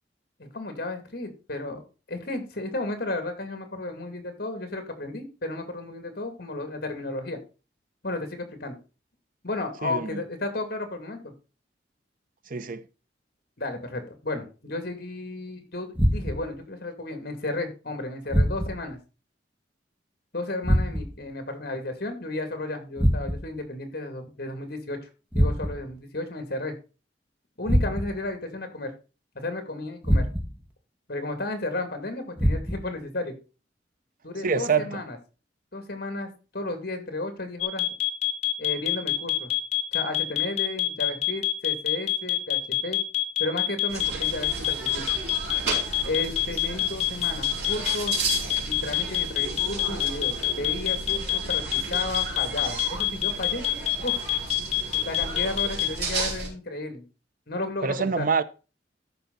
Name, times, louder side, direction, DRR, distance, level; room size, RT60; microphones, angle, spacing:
voice 1, 0.4-7.4 8.0-8.8 9.4-11.3 13.6-19.0 20.3-25.1 25.3-26.8 27.6-28.9 29.3-30.3 31.1-33.4 34.2-35.2 35.7-37.9 38.6-39.5 39.9-43.0 43.4-45.2 46.0-48.1 48.7-53.6 54.0-54.2 54.9-57.0 57.5-58.3, left 2 dB, 60° left, 2.4 m, -33 dB
voice 2, 9.8-10.2 12.5-12.8 34.4-35.0 57.8-58.4, right 5 dB, 50° right, 0.6 m, -25 dB
sound 1, 15.9-16.6 18.3-18.9 20.6-21.3 23.0-23.6 25.3-26.0 27.7-28.3 30.0-30.7 32.4-33.0, equal, 10° right, 1.7 m, -24 dB
sound 2, 37.6-55.9, left 17 dB, 40° left, 2.5 m, -25 dB
sound 3, 43.9-56.5, right 3 dB, 65° right, 4.9 m, -34 dB
13.5 x 5.6 x 4.0 m
head